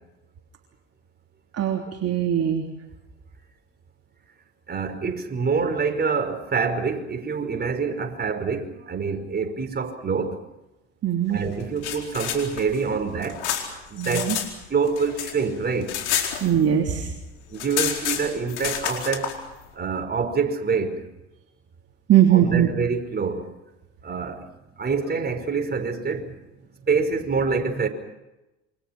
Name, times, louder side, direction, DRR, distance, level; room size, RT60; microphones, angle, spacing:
voice 1, 1.5-2.7 11.0-11.4 14.0-14.4 16.4-17.1 22.1-22.7, right 10 dB, 45° right, 3.4 m, -20 dB
voice 2, 4.7-10.4 11.3-13.4 13.9-14.4 14.7-16.0 17.5-19.3 19.7-21.0 22.3-23.5 24.0-24.5 24.8-27.9, right 5 dB, 30° right, 5.4 m, -26 dB
sound 1, 11.6-14.5 14.8-16.9 17.2-17.3 17.5-19.3, left 10 dB, 80° left, 4.5 m, -29 dB
27.5 x 25.0 x 6.1 m
hypercardioid pair, 70°, 34 cm